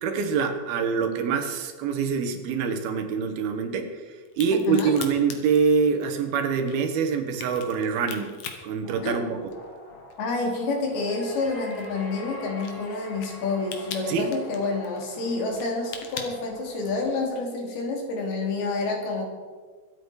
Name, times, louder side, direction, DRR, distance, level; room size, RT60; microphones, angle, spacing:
voice 1, 0.0-4.0 4.4-8.3 8.6-9.4 14.1-14.3, right 5 dB, 75° right, 6 dB, 3.2 m, -25 dB
Crack, 4.3-9.8 10.1-17.1, left 7 dB, 60° left, 2.4 m, -41 dB
voice 2, 4.5-5.0 9.0-9.4 10.2-19.3, left 3 dB, 80° left, 0 dB, 4.5 m, -28 dB
sound 1, 8.8-17.2, left 1 dB, 40° left, 3.2 m, -44 dB
24.0 x 8.6 x 4.8 m, 1.5 s
omnidirectional pair, 4.4 m